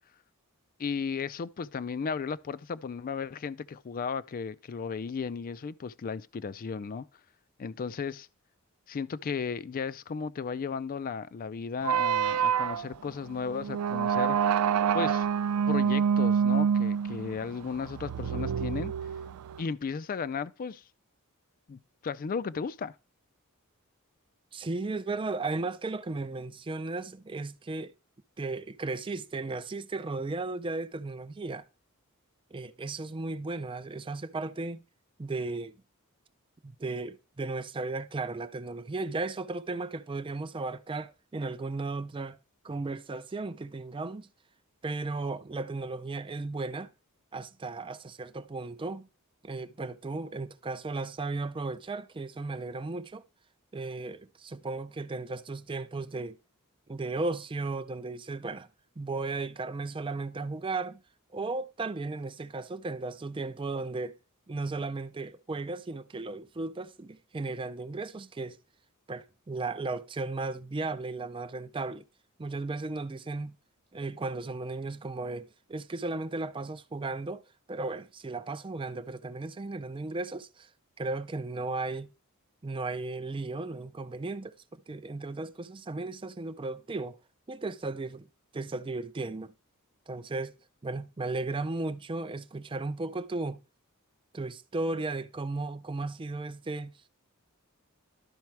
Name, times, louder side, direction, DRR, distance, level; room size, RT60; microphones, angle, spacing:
voice 1, 0.8-7.1 7.6-8.3 8.9-14.6 14.9-15.3 15.7-18.9 19.6-20.8 21.7-22.9, left 5 dB, 40° left, 0.4 m, -35 dB
sound 1, 11.8-19.6, right 7 dB, 85° right, 0.4 m, -27 dB
voice 2, 24.5-27.9 28.4-31.6 32.5-34.8 35.2-35.8 36.6-42.4 42.6-44.3 44.8-46.9 47.3-49.1 49.4-53.2 53.7-56.4 56.9-58.7 59.0-61.0 61.3-64.2 64.5-68.6 69.1-72.0 72.4-73.5 73.9-77.4 77.7-80.7 81.0-82.1 82.6-87.2 87.5-88.3 88.5-89.5 90.1-90.5 90.8-93.6 94.3-96.9, right 3 dB, 25° right, 0.4 m, -35 dB
12.0 x 4.2 x 4.6 m
head